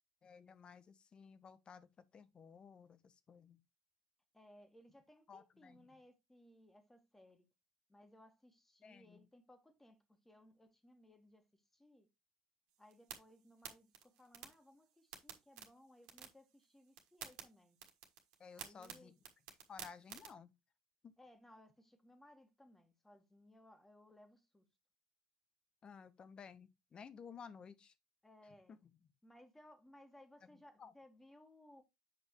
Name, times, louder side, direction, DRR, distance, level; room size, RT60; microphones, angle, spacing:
voice 1, 0.2-3.6 5.3-5.9 8.8-9.3 18.4-19.1 19.7-20.5 21.0-21.1 25.8-27.9 28.7-28.8 30.4-30.9, left 6 dB, 35° left, 0.9 m, -56 dB
voice 2, 4.3-7.5 7.9-12.1 12.8-17.8 18.5-19.1 21.2-24.7 28.2-28.8 29.2-31.8, left 1 dB, 10° left, 1.8 m, -63 dB
sound 1, 12.7-20.3, right 9 dB, 75° right, 1.6 m, -55 dB
7.7 x 5.3 x 3.1 m
hypercardioid pair, 70°, 3 cm